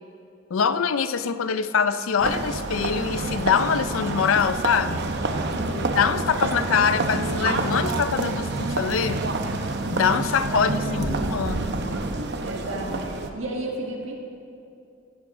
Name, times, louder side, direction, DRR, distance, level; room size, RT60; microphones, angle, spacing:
voice 1, 0.5-5.0 6.0-9.3 9.9-11.7, left 6 dB, 85° left, 13 dB, 0.5 m, -24 dB
sound 1, 2.2-13.3, right 2 dB, 55° right, 0.8 m, -27 dB
voice 2, 5.4-5.9 10.5-11.3 12.4-14.1, right 1 dB, 70° right, 0 dB, 1.7 m, -33 dB
15.0 x 9.7 x 3.8 m, 2.6 s
head